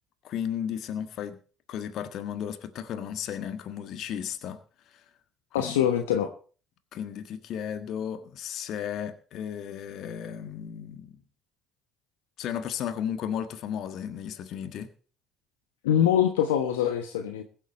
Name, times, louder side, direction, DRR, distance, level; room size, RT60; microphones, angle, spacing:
voice 1, 0.2-1.4 1.7-4.6 5.6-5.8 6.9-11.1 12.4-14.9, left 9 dB, 60° left, 1.5 m, -34 dB
voice 2, 5.5-6.3 15.8-17.4, left 9 dB, 80° left, 1.1 m, -24 dB
21.5 x 7.5 x 4.4 m
figure-of-eight pair, 50°, 0 cm